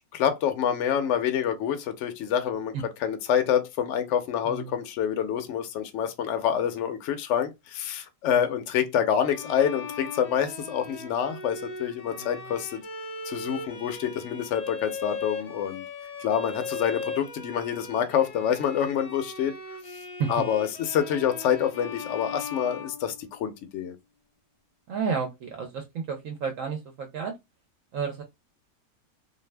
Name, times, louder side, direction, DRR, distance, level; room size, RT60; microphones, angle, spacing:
voice 1, 0.1-2.7 3.0-12.8 13.3-15.8 16.2-19.5 20.3-24.0, left 9 dB, 65° left, 0.8 m, -27 dB
voice 2, 4.4-4.8 12.1-12.6 20.2-20.3 24.9-27.3 27.9-28.2, right 6 dB, 65° right, 0.9 m, -32 dB
Bowed string instrument, 9.3-23.5, left 3 dB, 80° left, 0.3 m, -39 dB
2.6 x 2.2 x 3.2 m
omnidirectional pair, 1.5 m